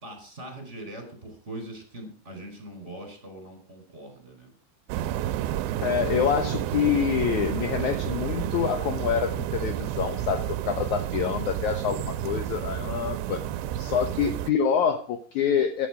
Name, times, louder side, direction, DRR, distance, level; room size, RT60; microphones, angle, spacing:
voice 1, 0.0-4.5, right 1 dB, 15° right, 5 dB, 4.7 m, -41 dB
sound 1, 4.9-14.5, right 12 dB, 90° right, 3.0 m, -30 dB
voice 2, 5.8-13.4 13.8-15.9, left 8 dB, 75° left, 8 dB, 1.8 m, -26 dB
15.0 x 11.0 x 5.0 m, 0.42 s
omnidirectional pair, 4.8 m